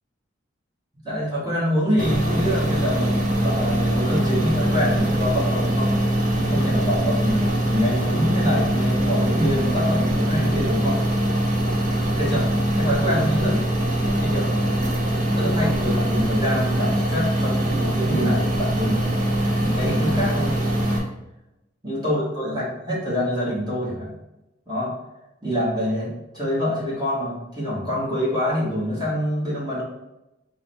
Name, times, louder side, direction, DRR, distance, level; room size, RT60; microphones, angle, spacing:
voice 1, 1.0-5.9 6.3-11.0 12.1-12.5 12.7-14.7 15.3-19.2 19.6-20.5 21.8-24.1 24.7-24.9 25.4-29.8, equal, 20° right, -8 dB, 1.2 m, -25 dB
sound 1, 2.0-21.0, right 1 dB, 40° right, 0.8 m, -22 dB
4.6 x 2.2 x 4.3 m, 0.94 s
head